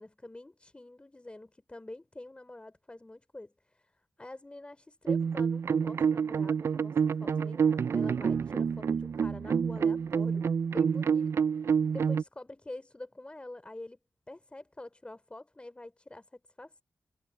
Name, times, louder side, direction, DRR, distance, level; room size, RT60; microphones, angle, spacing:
voice 1, 0.0-3.9 4.2-10.4 10.7-11.3 11.6-14.0 14.3-16.8, left 2 dB, 25° left, 3.2 m, -47 dB
sound 1, 5.1-12.2, right 6 dB, 70° right, 0.4 m, -28 dB
cardioid pair, 50°, 5 cm